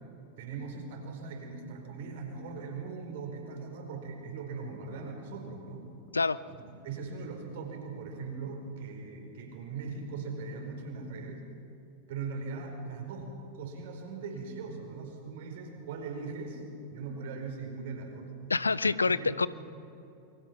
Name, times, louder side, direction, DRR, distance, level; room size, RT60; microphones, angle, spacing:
voice 1, 0.4-5.9 6.5-6.6 6.8-11.5 12.1-16.6 16.9-18.3 18.8-19.5, right 4 dB, 55° right, 2 dB, 4.8 m, -40 dB
voice 2, 18.5-19.5, left 4 dB, 80° left, 19 dB, 0.5 m, -26 dB
27.5 x 23.5 x 6.0 m, 2.9 s
figure-of-eight pair, 90°, 0 cm